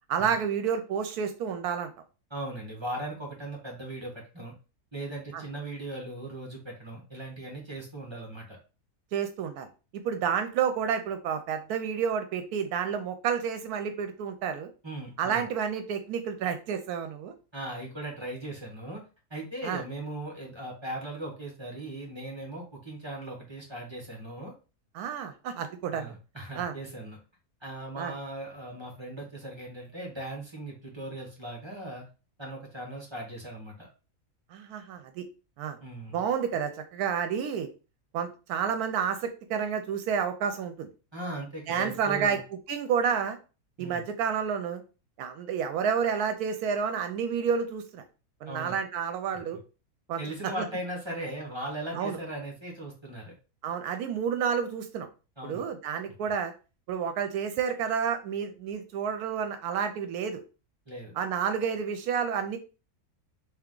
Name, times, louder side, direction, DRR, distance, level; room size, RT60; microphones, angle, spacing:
voice 1, 0.1-1.9 5.3-5.4 9.1-9.7 9.9-14.7 15.2-17.3 19.6-19.8 24.9-26.1 26.6-26.7 28.0-28.1 34.5-35.2 35.6-35.8 36.1-37.7 38.1-40.9 41.7-42.4 42.7-43.4 43.8-44.8 45.2-48.0 48.4-49.6 50.1-50.2 52.0-52.2 53.6-55.1 55.4-56.5 56.9-60.4 61.2-62.6, right 7 dB, 80° right, 8 dB, 1.1 m, -30 dB
voice 2, 2.3-4.5 4.9-8.6 14.8-15.4 17.5-19.0 19.3-24.5 25.9-27.2 27.6-32.0 32.4-33.9 35.8-36.2 41.1-42.4 43.8-44.1 48.5-48.8 50.2-53.3 55.4-55.6 60.9-61.1, right 1 dB, 20° right, -1 dB, 1.1 m, -38 dB
3.4 x 3.0 x 3.7 m, 0.32 s
omnidirectional pair, 1.6 m